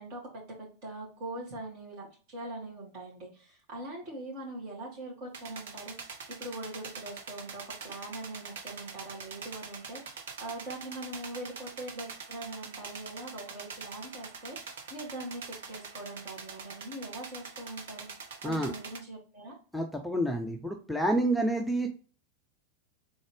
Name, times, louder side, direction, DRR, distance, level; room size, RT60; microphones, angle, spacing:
voice 1, 0.0-18.1 18.4-19.6, right 1 dB, 45° right, -2 dB, 2.4 m, -42 dB
sound 1, 5.3-19.0, right 5 dB, 60° right, 0.7 m, -44 dB
voice 2, 19.7-21.9, right 1 dB, ahead, 2 dB, 0.6 m, -28 dB
3.9 x 3.8 x 3.4 m, 0.39 s
figure-of-eight pair, 90°, 0 cm